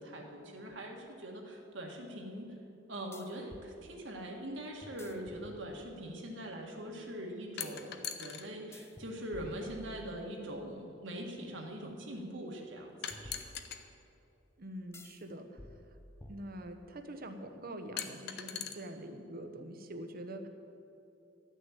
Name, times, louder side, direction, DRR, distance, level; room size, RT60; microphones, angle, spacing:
voice 1, 0.0-2.5 2.9-13.0 13.2-13.5, right 1 dB, 65° right, 1 dB, 1.8 m, -42 dB
sound 1, 0.7-0.8 3.1-3.7 4.8-6.1 8.7-10.4 13.1-14.1 14.9-15.2 15.6-16.9, left 1 dB, 15° left, 0.5 m, -52 dB
sound 2, 7.6-8.5 9.7-9.8 13.0-13.8 15.3-15.4 18.0-18.7, left 9 dB, 55° left, 0.8 m, -40 dB
voice 2, 14.6-15.5 16.3-20.5, right 1 dB, 50° right, 6 dB, 1.0 m, -44 dB
13.0 x 6.5 x 9.3 m, 2.8 s
head